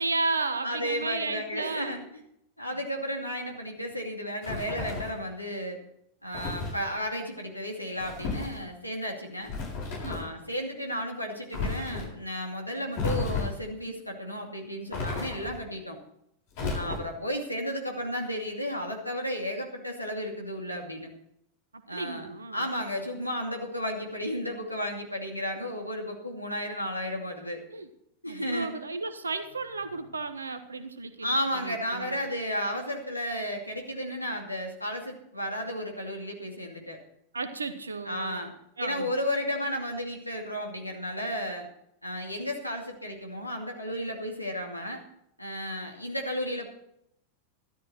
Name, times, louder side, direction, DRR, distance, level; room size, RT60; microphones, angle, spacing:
voice 1, 0.0-2.0 10.0-10.2 16.6-16.9 21.9-22.6 27.7-27.9 28.3-31.3 31.6-32.1 37.3-38.5 38.8-39.1, right 3 dB, 75° right, 10 dB, 1.3 m, -33 dB
voice 2, 0.6-2.0 2.6-5.8 6.2-9.5 10.0-16.0 16.7-21.1 21.9-27.6 28.2-28.7 31.2-37.0 38.0-38.5 38.8-41.7 42.0-45.0 45.4-46.7, equal, 90° left, 1 dB, 2.6 m, -33 dB
sound 1, 4.4-5.2 6.3-6.8 8.0-8.6 9.4-10.3 11.5-12.1 12.9-13.7 14.9-15.6 16.5-17.2, left 3 dB, 50° left, 7.0 m, -33 dB
13.5 x 12.5 x 4.5 m, 0.76 s
figure-of-eight pair, 90°, 0 cm